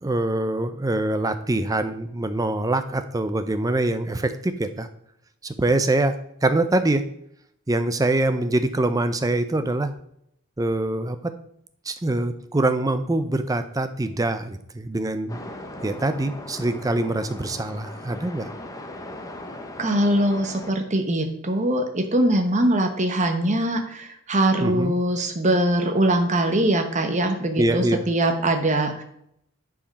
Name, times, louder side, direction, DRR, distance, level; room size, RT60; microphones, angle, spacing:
voice 1, 0.0-4.9 5.4-7.1 7.7-9.9 10.6-11.3 11.9-15.4 15.8-18.5 24.6-24.9 27.6-28.0, right 2 dB, 15° right, 10 dB, 0.5 m, -24 dB
sound 1, 15.3-20.7, left 1 dB, 15° left, 0.8 m, -38 dB
voice 2, 19.8-29.0, right 1 dB, 35° right, 5 dB, 1.0 m, -22 dB
10.0 x 4.8 x 5.3 m, 0.74 s
head